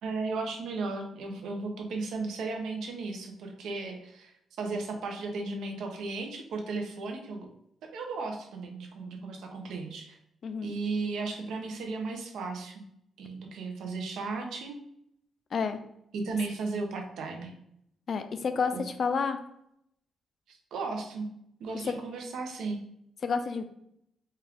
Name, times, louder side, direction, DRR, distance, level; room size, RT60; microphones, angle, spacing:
voice 1, 0.0-4.3 4.6-7.5 7.8-10.2 10.6-12.8 13.2-14.8 16.1-17.6 18.7-18.8 20.5-21.3 21.6-22.8, right 3 dB, 75° right, 3 dB, 0.7 m, -35 dB
voice 2, 18.1-19.4 21.9-22.0 23.2-23.6, left 5 dB, 40° left, 9 dB, 0.3 m, -29 dB
4.3 x 2.4 x 3.4 m, 0.75 s
cardioid pair, 170°, 0 cm